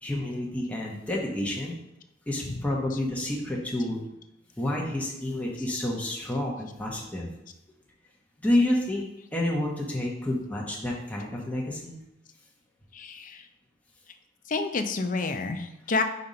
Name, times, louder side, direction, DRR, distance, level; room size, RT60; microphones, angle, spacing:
voice 1, 0.0-1.7 2.3-4.0 4.6-7.3 8.4-9.0 9.3-12.0, left 1 dB, 10° left, -3 dB, 0.9 m, -29 dB
voice 2, 12.9-13.4 14.5-16.0, left 3 dB, 45° left, 7 dB, 0.6 m, -29 dB
5.3 x 4.3 x 5.2 m, 0.88 s
head